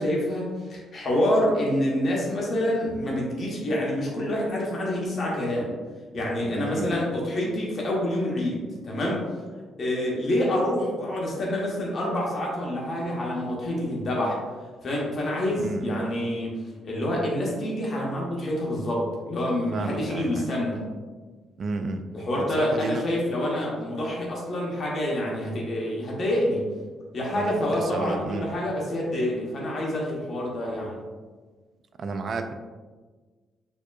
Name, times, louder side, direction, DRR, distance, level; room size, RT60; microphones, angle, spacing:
voice 1, 0.0-5.7 6.1-9.3 9.8-14.4 14.8-16.5 16.8-20.8 22.1-26.7 27.1-31.0, left 1 dB, 50° left, -3 dB, 1.0 m, -27 dB
voice 2, 6.5-6.9 15.5-16.0 19.7-20.5 21.6-22.1 22.4-23.1 27.3-28.4 32.0-32.5, right 3 dB, 50° right, 7 dB, 0.3 m, -32 dB
4.4 x 2.9 x 2.4 m, 1.4 s
cardioid pair, 90°, 0 cm